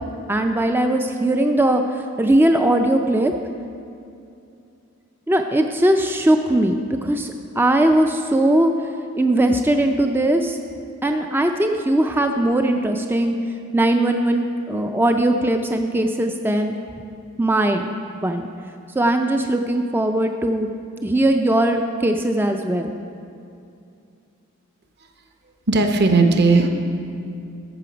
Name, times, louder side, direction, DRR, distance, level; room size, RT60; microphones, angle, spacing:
voice 1, 0.3-3.3 5.3-8.7 9.2-10.6 11.0-13.4 13.7-16.8 17.4-17.9 18.2-18.5 19.0-20.7 21.0-22.9, right 1 dB, 10° right, 5 dB, 0.4 m, -19 dB
voice 2, 25.7-26.7, right 3 dB, 50° right, 4 dB, 0.9 m, -16 dB
13.5 x 6.7 x 5.1 m, 2.6 s
head